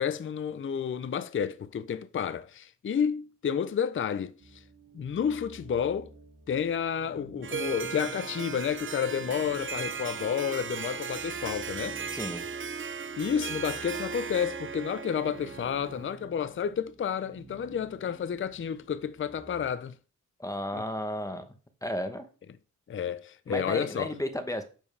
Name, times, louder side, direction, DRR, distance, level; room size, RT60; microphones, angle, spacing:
voice 1, 0.0-4.6 4.9-6.1 6.5-12.0 13.2-20.0 20.7-20.8 22.9-24.1, left 8 dB, 40° left, 0.4 m, -31 dB
sound 1, 4.4-19.7, right 2 dB, 80° right, 2.7 m, -52 dB
Harp, 7.4-16.2, right 6 dB, 40° right, 0.5 m, -37 dB
voice 2, 12.1-12.4 20.4-21.5 21.8-22.3 23.5-24.6, equal, 10° left, 0.9 m, -33 dB
10.0 x 7.1 x 3.3 m
wide cardioid pair, 175°, 33 cm